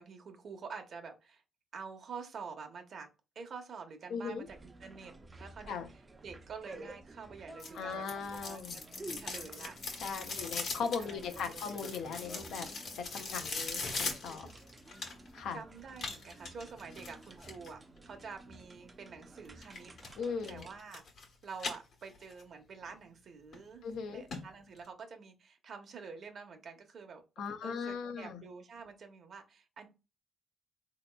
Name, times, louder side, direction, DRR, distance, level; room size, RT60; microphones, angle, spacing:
voice 1, 0.0-1.4 1.7-3.1 3.3-5.8 6.2-8.1 8.4-8.8 9.1-10.5 11.0-11.8 13.1-13.7 15.5-19.9 20.2-21.0 21.4-29.9, right 5 dB, 55° right, 4 dB, 0.8 m, -48 dB
voice 2, 4.1-4.5 5.7-5.9 7.7-8.8 10.0-12.7 12.9-14.5 15.3-15.6 20.2-20.6 23.8-24.2 27.4-28.4, left 6 dB, 80° left, 7 dB, 0.6 m, -38 dB
sound 1, 4.5-20.8, right 2 dB, 25° right, 0.5 m, -52 dB
sound 2, 7.6-15.4 16.0-17.7 19.6-20.1 20.4-21.3 21.5-22.4 22.8-22.9 23.5-23.6 23.9-24.0 24.3-24.4 24.8-24.9, left 4 dB, 60° left, 1.1 m, -40 dB
3.9 x 2.8 x 2.2 m, 0.28 s
cardioid pair, 90°, 0 cm